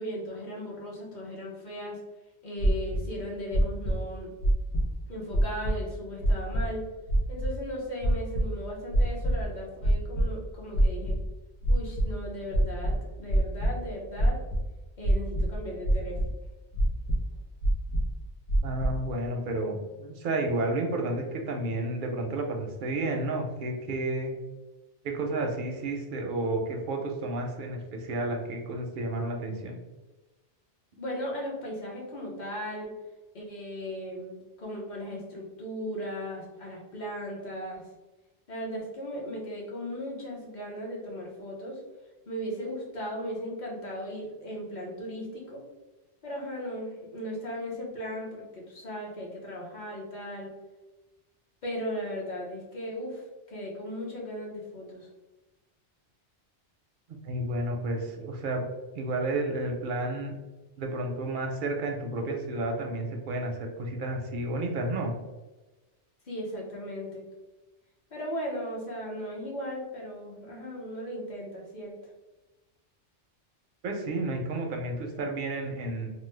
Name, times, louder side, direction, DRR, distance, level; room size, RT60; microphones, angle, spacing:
voice 1, 0.0-2.0 2.4-4.3 5.1-6.8 7.3-11.2 11.7-14.4 15.0-16.2 31.0-32.9 33.3-37.8 38.5-41.8 42.3-45.6 46.2-50.5 51.6-55.1 66.2-67.2 68.1-71.9, equal, 45° left, -3 dB, 0.9 m, -37 dB
sound 1, 2.6-3.0 3.5-4.0 4.4-4.9 5.3-5.7 6.2-6.6 7.1-7.5 8.0-8.5 8.9-9.4 9.8-10.3 10.7-11.3 11.6-12.1 12.5-13.7 14.2-14.6 15.0-15.6 15.8-16.3 16.7-17.2 17.6-18.1 18.5-18.9, right 1 dB, 80° left, 1.0 m, -24 dB
voice 2, 18.6-24.4 25.0-29.8 57.2-58.6 58.9-60.3 60.8-65.1 73.8-76.1, right 2 dB, 60° right, 2 dB, 0.6 m, -31 dB
3.0 x 2.1 x 3.2 m, 1.1 s
omnidirectional pair, 1.2 m